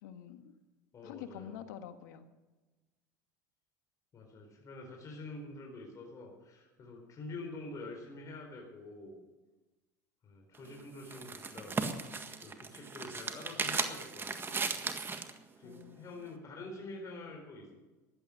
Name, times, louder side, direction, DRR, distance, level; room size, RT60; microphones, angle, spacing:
voice 1, 0.0-0.5 1.0-2.2 15.6-16.2, left 9 dB, 80° left, 8 dB, 1.7 m, -47 dB
voice 2, 0.9-1.6 4.1-9.1 10.2-11.8 12.4-14.8 15.6-17.7, left 2 dB, 35° left, 1 dB, 4.4 m, -47 dB
sound 1, 10.5-15.4, right 4 dB, 25° right, 1.7 m, -37 dB
15.5 x 11.5 x 6.6 m, 1.2 s
supercardioid pair, 95°, 10 cm